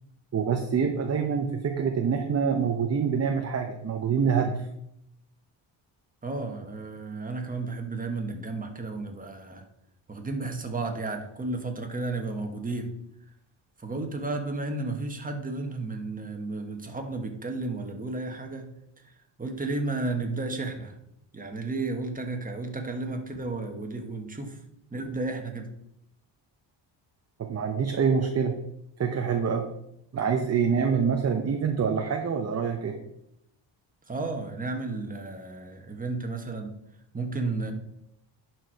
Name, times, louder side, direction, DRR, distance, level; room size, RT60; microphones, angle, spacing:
voice 1, 0.3-4.6 27.4-28.6 29.0-29.7 30.1-33.0, right 6 dB, 35° right, 4 dB, 0.8 m, -26 dB
voice 2, 6.2-9.6 10.1-12.9 13.8-18.7 19.0-21.0 21.3-24.6 24.9-25.7 34.1-36.8 37.1-37.7, right 3 dB, 20° right, 4 dB, 1.4 m, -33 dB
11.0 x 4.8 x 4.7 m, 0.80 s
cardioid pair, 120°, 45 cm